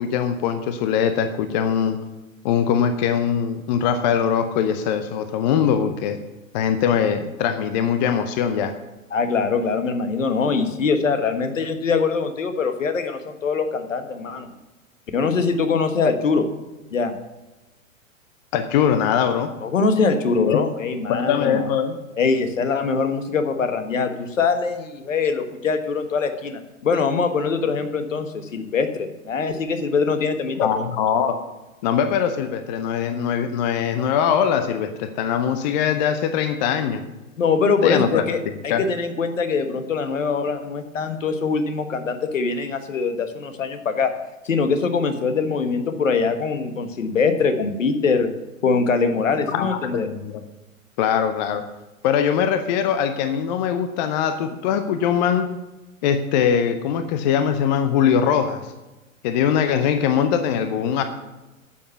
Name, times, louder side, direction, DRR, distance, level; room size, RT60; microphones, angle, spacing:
voice 1, 0.0-2.0 2.4-6.2 6.5-8.7 18.5-19.5 20.3-20.6 21.1-22.0 30.6-31.3 31.8-37.0 37.8-38.2 38.7-38.8 49.5-50.3 51.0-51.6 52.0-55.5 56.0-58.7 59.2-61.0, left 8 dB, 30° left, 9 dB, 0.7 m, -21 dB
voice 2, 9.1-14.5 15.1-16.5 16.9-17.1 19.6-21.7 22.2-30.8 37.4-44.1 44.4-48.3 48.6-50.1, left 5 dB, 65° left, 8 dB, 1.4 m, -23 dB
10.0 x 7.1 x 6.7 m, 1.1 s
figure-of-eight pair, 105°, 41 cm